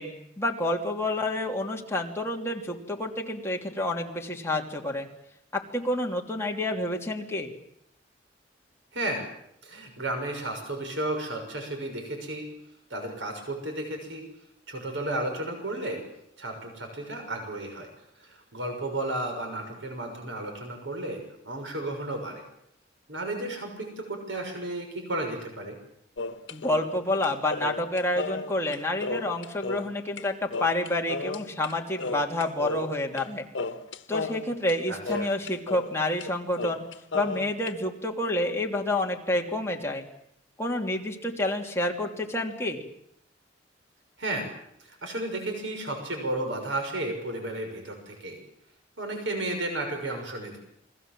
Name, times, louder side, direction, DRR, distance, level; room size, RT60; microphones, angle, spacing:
voice 1, 0.0-5.1 5.5-7.5 26.5-33.4 34.1-36.8 37.1-40.0 40.6-42.8, left 1 dB, 15° left, 1 dB, 3.1 m, -29 dB
voice 2, 8.9-9.2 9.6-12.5 12.9-14.2 14.7-16.0 16.4-17.9 18.2-22.4 23.1-25.8 34.9-35.3 44.2-44.5 44.8-48.4 49.0-50.6, right 1 dB, 80° right, 4 dB, 6.3 m, -33 dB
sound 1, 26.2-30.2 30.5-31.7 32.0-33.3 33.5-35.9 36.2-36.3 36.6-37.7, left 3 dB, 80° left, 1.3 m, -34 dB
29.0 x 21.5 x 7.7 m, 0.75 s
head